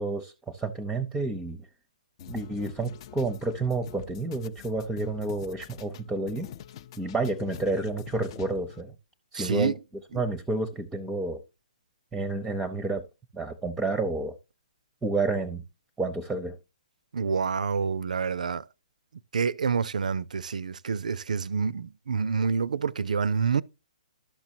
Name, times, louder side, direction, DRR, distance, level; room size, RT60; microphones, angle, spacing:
voice 1, 0.0-1.7 2.3-6.5 7.0-9.0 9.3-9.7 10.1-11.4 12.1-13.1 13.3-14.4 15.0-15.6 16.0-16.6, right 3 dB, 5° right, 0.7 m, -30 dB
sound 1, 2.2-8.8, left 9 dB, 40° left, 0.5 m, -45 dB
voice 2, 9.3-9.8 17.1-18.7 19.3-23.6, right 5 dB, 70° right, 0.4 m, -27 dB
12.0 x 6.1 x 2.7 m
figure-of-eight pair, 130°, 4 cm